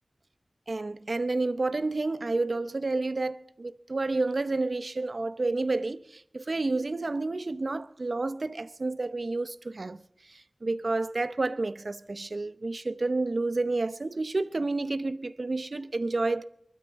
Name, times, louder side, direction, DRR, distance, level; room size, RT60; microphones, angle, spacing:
voice 1, 0.7-10.0 10.3-16.4, right 3 dB, 60° right, 0.7 m, -30 dB
23.5 x 12.5 x 4.1 m
wide cardioid pair, 60°, 0 cm